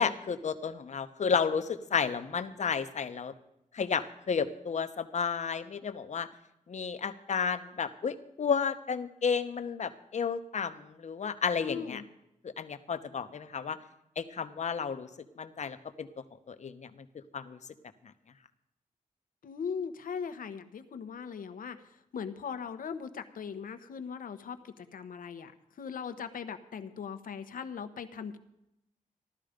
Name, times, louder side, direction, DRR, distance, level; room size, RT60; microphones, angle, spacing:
voice 1, 0.0-3.3 3.7-6.3 6.7-12.0 12.4-13.8 14.2-15.1 15.4-16.1 16.5-16.9 17.3-17.6, left 6 dB, 55° left, 9 dB, 1.0 m, -32 dB
voice 2, 11.6-12.0 19.4-21.8 22.1-25.5 25.8-28.4, left 6 dB, 90° left, 9 dB, 1.1 m, -39 dB
16.0 x 12.5 x 5.2 m, 0.83 s
wide cardioid pair, 125°, 14 cm